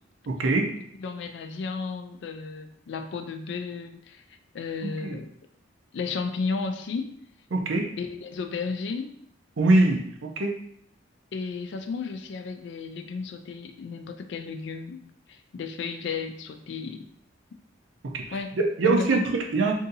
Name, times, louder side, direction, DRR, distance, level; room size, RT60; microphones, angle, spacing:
voice 1, 0.3-0.7 4.8-5.2 7.5-7.9 9.6-10.6 18.0-19.7, right 2 dB, 75° right, 2 dB, 0.6 m, -24 dB
voice 2, 1.0-4.2 4.5-5.3 5.9-7.2 8.0-9.2 11.3-15.0 15.3-17.1 18.3-18.6 18.8-19.3, left 4 dB, 60° left, 7 dB, 0.3 m, -33 dB
2.7 x 2.6 x 3.8 m, 0.69 s
head